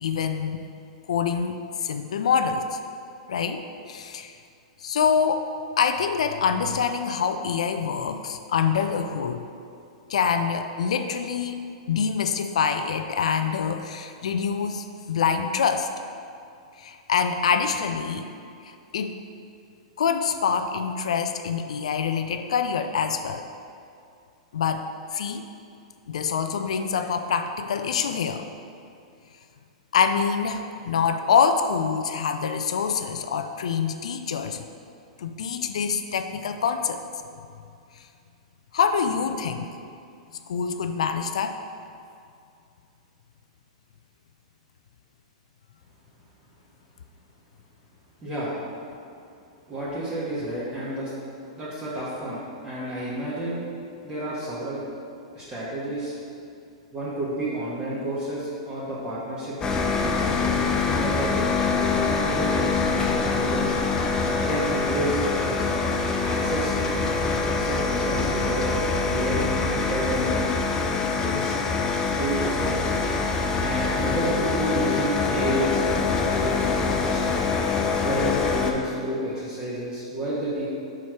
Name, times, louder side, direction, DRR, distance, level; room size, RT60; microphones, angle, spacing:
voice 1, 0.0-0.6 1.1-2.8 3.3-3.6 3.9-4.4 4.8-5.5 5.8-9.5 10.1-15.9 16.8-18.3 18.6-19.2 20.0-23.5 24.5-25.5 26.1-28.5 29.9-34.6 35.2-37.0 38.0-38.1 38.7-39.7 40.5-41.6, left 6 dB, 75° left, 7 dB, 0.3 m, -25 dB
voice 2, 48.2-48.5 49.7-51.1 51.5-53.6 54.0-54.8 55.3-56.1 56.9-61.3 61.9-63.8 64.4-65.6 66.2-66.7 67.5-68.6 69.0-70.4 71.2-71.6 72.2-73.0 73.6-76.0 76.3-77.5 78.0-80.7, right 1 dB, 20° right, -10 dB, 1.6 m, -30 dB
sound 1, 59.6-78.7, left 4 dB, 20° left, 0.6 m, -25 dB
4.8 x 4.3 x 5.9 m, 2.5 s
hypercardioid pair, 115°, 3 cm